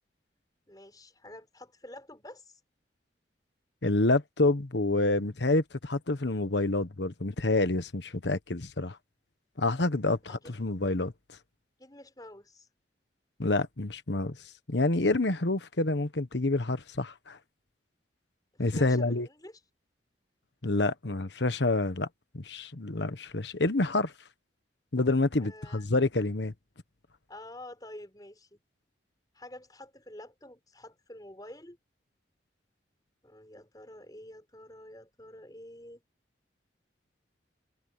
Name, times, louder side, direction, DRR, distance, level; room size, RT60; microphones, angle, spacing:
voice 1, 0.7-2.6 10.4-10.5 11.8-12.7 18.5-19.6 25.4-25.8 27.3-28.6 29.3-31.8 33.2-36.0, left 1 dB, 20° left, 5.0 m, -48 dB
voice 2, 3.8-9.0 9.6-11.1 13.4-14.4 14.7-17.4 18.6-19.3 20.6-22.1 22.3-24.1 24.9-26.5, left 2 dB, 70° left, 1.3 m, -28 dB
head